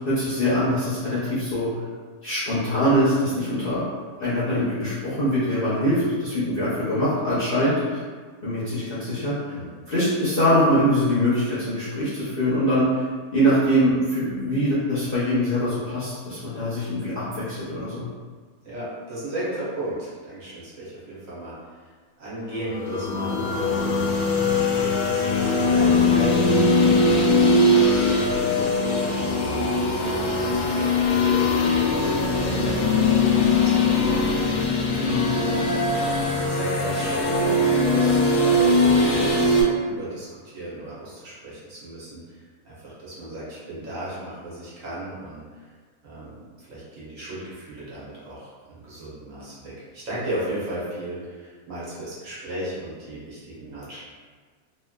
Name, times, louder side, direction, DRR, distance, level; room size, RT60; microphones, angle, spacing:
voice 1, 0.1-1.7 2.2-3.8 4.2-8.0 8.4-9.3 9.9-13.0 13.3-18.1 34.9-35.2, equal, 50° left, -11 dB, 0.7 m, -23 dB
voice 2, 18.6-25.0 25.4-38.2 38.7-39.5 39.8-45.7 46.0-54.0, right 1 dB, 60° right, -8 dB, 1.3 m, -36 dB
sound 1, 22.7-39.6, left 2 dB, 80° left, 1.1 m, -21 dB
3.0 x 2.9 x 2.2 m, 1.5 s
omnidirectional pair, 1.6 m